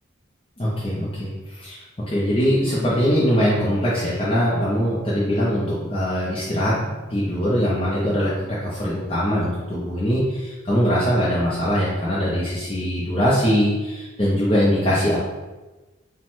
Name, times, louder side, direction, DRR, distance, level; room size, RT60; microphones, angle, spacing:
voice 1, 0.6-15.2, equal, 30° left, -8 dB, 0.6 m, -22 dB
5.0 x 2.3 x 3.6 m, 1.2 s
head